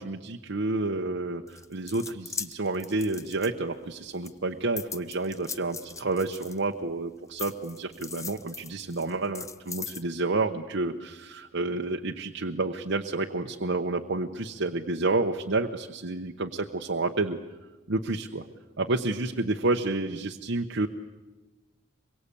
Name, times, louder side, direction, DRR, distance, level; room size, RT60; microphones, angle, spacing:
voice 1, 0.0-17.4 17.9-18.5 18.8-20.9, right 2 dB, 60° right, 3 dB, 1.0 m, -30 dB
sound 1, 1.5-3.9 4.2-6.9 7.4-10.0, left 5 dB, 15° left, 0.7 m, -40 dB
25.5 x 23.0 x 8.4 m, 1.2 s
head